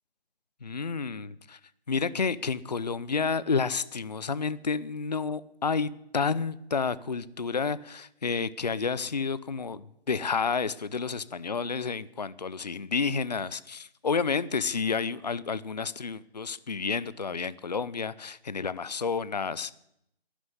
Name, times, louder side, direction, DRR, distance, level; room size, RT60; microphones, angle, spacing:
voice 1, 0.6-1.6 1.9-19.7, left 5 dB, 40° left, 18 dB, 0.6 m, -30 dB
11.5 x 11.5 x 9.7 m, 0.77 s
figure-of-eight pair, 170°, 32 cm